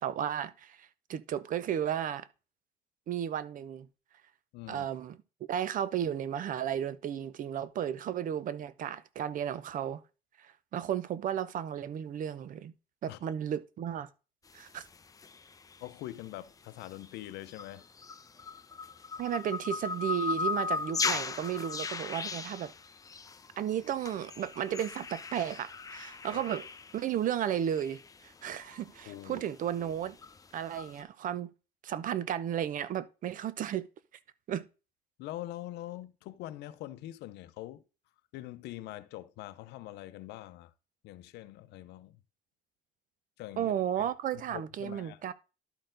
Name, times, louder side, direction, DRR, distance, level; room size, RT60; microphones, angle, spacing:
voice 1, 0.0-2.3 3.1-3.9 4.7-5.2 5.5-10.0 10.4-12.7 13.0-14.1 14.5-14.8 19.2-22.7 23.6-26.7 26.9-30.2 30.5-31.5 31.8-33.9 34.5-34.7 43.6-45.3, right 10 dB, 50° right, 0.6 m, -34 dB
voice 2, 4.5-4.9 13.1-13.2 15.8-17.9 26.3-26.4 29.0-29.5 35.2-37.8 38.3-40.7 41.0-42.2 43.4-44.1 44.5-45.2, left 15 dB, 85° left, 0.6 m, -44 dB
sound 1, 14.5-16.3 16.8-31.0, left 4 dB, 20° left, 0.6 m, -38 dB
12.0 x 4.3 x 3.8 m
cardioid pair, 110°, 17 cm